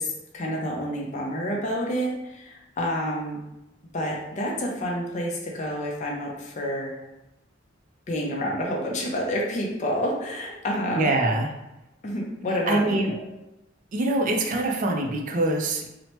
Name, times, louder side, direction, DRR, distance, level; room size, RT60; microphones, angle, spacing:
voice 1, 0.0-3.4 3.9-7.0 8.1-11.1 12.0-13.2, equal, 40° left, -2 dB, 0.4 m, -29 dB
voice 2, 11.0-11.5 12.7-13.1 13.9-15.9, right 2 dB, 45° right, 2 dB, 0.4 m, -24 dB
2.8 x 2.0 x 2.9 m, 0.92 s
head